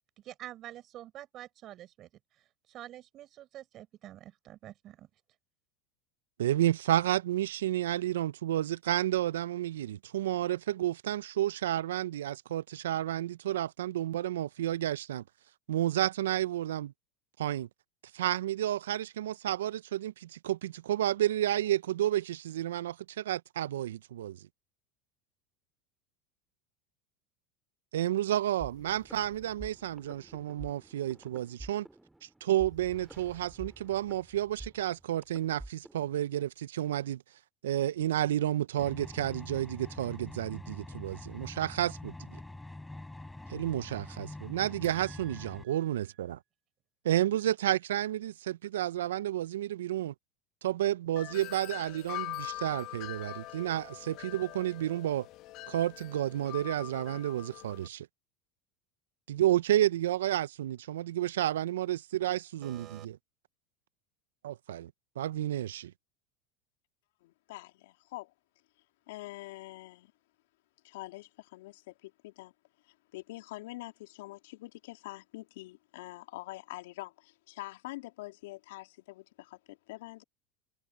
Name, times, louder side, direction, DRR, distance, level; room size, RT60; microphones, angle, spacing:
voice 1, 0.2-2.1 2.7-5.1 44.8-45.8 62.6-63.1, right 13 dB, 45° right, 4.9 m, -48 dB
voice 2, 6.4-15.2 15.7-16.9 17.4-17.7 18.1-24.4 27.9-31.9 32.2-37.2 37.6-42.1 43.5-46.4 47.0-50.1 50.6-55.3 55.7-58.1 59.3-63.2 64.4-64.9 65.2-65.9, right 12 dB, 80° right, 0.6 m, -31 dB
sound 1, 28.6-36.2, right 2 dB, 10° right, 2.8 m, -49 dB
sound 2, 38.8-45.6, left 2 dB, 10° left, 4.6 m, -45 dB
Wind chime, 51.2-57.9, left 17 dB, 55° left, 1.9 m, -43 dB
voice 3, 67.2-68.3 69.1-70.1 70.8-72.5 72.8-80.2, left 19 dB, 70° left, 3.4 m, -45 dB
hypercardioid pair, 85°, 0 cm